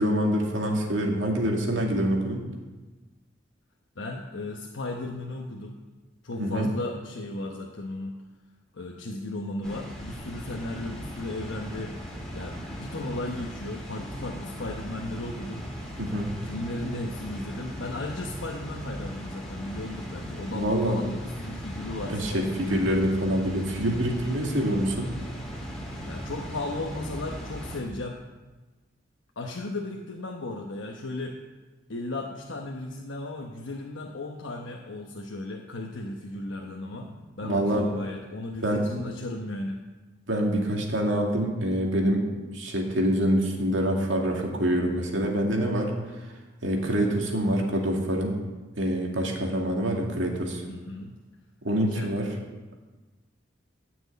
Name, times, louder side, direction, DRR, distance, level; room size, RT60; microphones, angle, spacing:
voice 1, 0.0-2.4 6.4-6.7 16.0-16.3 20.6-21.0 22.1-25.1 37.0-37.1 37.4-37.9 38.6-39.0 40.3-42.3 42.5-45.9 46.6-48.3 48.8-50.6 51.6-52.3, equal, 80° right, 0 dB, 2.3 m, -26 dB
voice 2, 4.0-5.8 6.2-8.2 8.7-11.9 12.3-15.7 16.4-22.9 26.0-28.2 29.4-31.4 31.9-39.8 46.6-47.0 50.7-51.1 51.9-52.1, left 2 dB, 90° left, 0 dB, 1.0 m, -35 dB
Water, 9.6-27.8, equal, 5° left, 3.0 m, -38 dB
14.0 x 6.2 x 8.4 m, 1.3 s
head